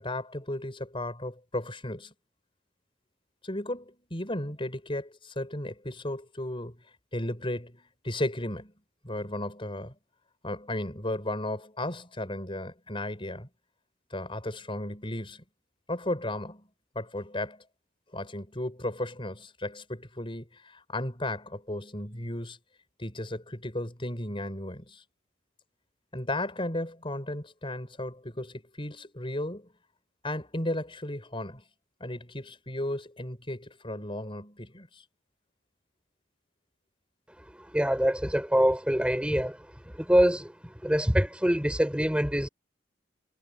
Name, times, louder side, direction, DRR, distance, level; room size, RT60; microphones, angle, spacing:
voice 1, 0.0-2.1 3.4-6.8 7.1-8.7 9.0-9.9 10.4-13.5 14.1-15.4 15.9-16.7 16.9-17.6 18.1-22.6 23.0-25.0 26.1-29.7 30.2-31.6 32.0-35.0, left 1 dB, 30° left, 6.2 m, -35 dB
voice 2, 37.5-42.5, equal, 5° right, 6.1 m, -25 dB
head